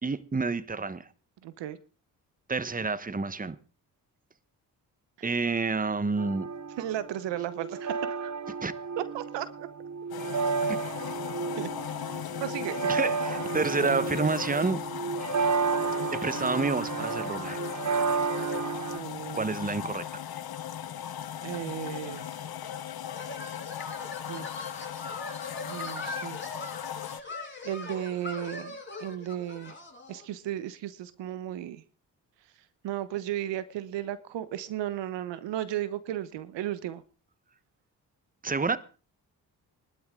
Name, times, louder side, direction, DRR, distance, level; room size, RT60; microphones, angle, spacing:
voice 1, 0.0-1.1 2.5-3.6 5.2-6.5 8.6-8.7 10.7-10.8 12.9-14.8 16.1-17.6 19.3-20.1 38.4-38.8, right 4 dB, 20° right, 1.2 m, -29 dB
voice 2, 1.4-1.8 5.2-5.3 6.8-8.3 9.0-9.7 11.6-11.7 12.0-12.9 18.9-19.7 21.4-22.3 24.3-24.5 25.6-26.4 27.0-27.4 27.6-29.8 30.1-31.8 32.8-37.0, right 12 dB, 80° right, 1.1 m, -35 dB
sound 1, 6.2-19.0, right 5 dB, 40° right, 1.0 m, -32 dB
sound 2, 10.1-27.2, left 10 dB, 55° left, 1.2 m, -37 dB
sound 3, 22.1-30.2, left 3 dB, 25° left, 5.6 m, -41 dB
20.5 x 12.0 x 3.8 m
supercardioid pair, 45°, 43 cm